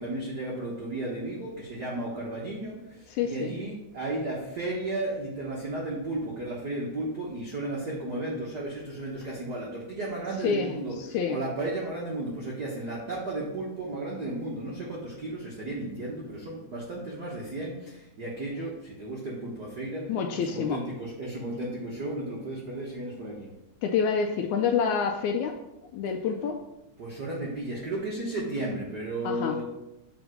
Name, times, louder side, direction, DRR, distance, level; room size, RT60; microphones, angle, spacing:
voice 1, 0.0-23.5 27.0-29.6, right 2 dB, 75° right, -4 dB, 0.9 m, -34 dB
voice 2, 3.1-3.6 10.4-10.7 11.0-11.4 20.1-20.8 23.8-25.6 25.9-26.6 29.2-29.6, left 6 dB, 80° left, 5 dB, 1.8 m, -27 dB
5.2 x 4.8 x 6.1 m, 0.91 s
omnidirectional pair, 3.7 m